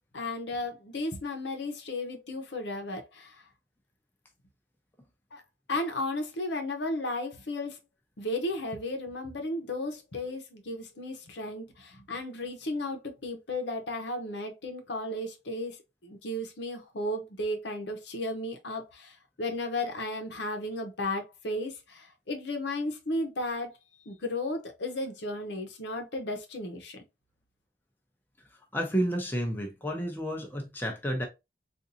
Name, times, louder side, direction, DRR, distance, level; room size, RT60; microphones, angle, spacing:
voice 1, 0.1-3.4 5.3-5.4 5.7-7.8 8.2-15.8 16.0-23.7 24.1-27.0, left 1 dB, 80° left, 0.9 m, -34 dB
voice 2, 28.7-31.3, equal, 10° left, 0.7 m, -31 dB
3.9 x 2.5 x 2.7 m
head